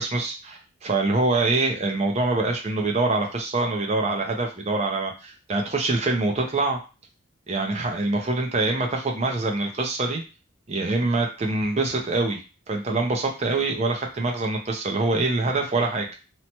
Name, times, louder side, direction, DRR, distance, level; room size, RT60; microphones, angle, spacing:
voice 1, 0.0-6.8 7.5-10.2 10.7-12.4 12.7-16.1, right 2 dB, 35° right, 1 dB, 0.5 m, -24 dB
2.9 x 2.1 x 2.8 m, 0.32 s
head